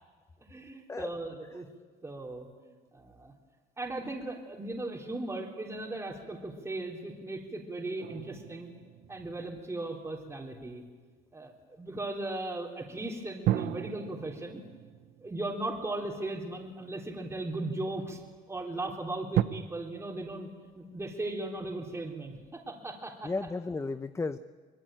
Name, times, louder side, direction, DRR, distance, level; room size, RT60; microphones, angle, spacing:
voice 1, 0.5-1.7 2.0-3.3 3.8-8.7 9.1-10.8 11.3-14.6 15.2-18.2 18.5-20.5 20.7-23.3, right 2 dB, 15° right, -1 dB, 3.8 m, -37 dB
sound 1, 8.0-10.6 13.4-16.8 17.5-17.6 19.3-19.4, right 13 dB, 70° right, 0.9 m, -35 dB
voice 2, 23.2-24.4, left 3 dB, 15° left, 12 dB, 0.7 m, -34 dB
24.5 x 21.5 x 9.1 m, 1.4 s
cardioid pair, 110°, 17 cm